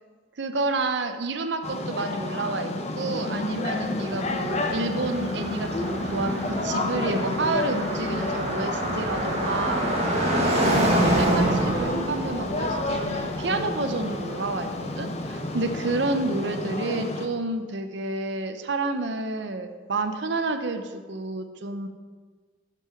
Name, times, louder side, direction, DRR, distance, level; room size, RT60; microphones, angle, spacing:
voice 1, 0.4-9.9 10.5-14.7 15.0-21.9, right 3 dB, 70° right, 8 dB, 0.7 m, -30 dB
sound 1, 1.6-17.3, left 2 dB, 35° left, 0.7 m, -31 dB
Car passing by, 3.4-15.4, right 1 dB, 35° right, 1.5 m, -28 dB
8.6 x 6.0 x 5.8 m, 1.5 s
head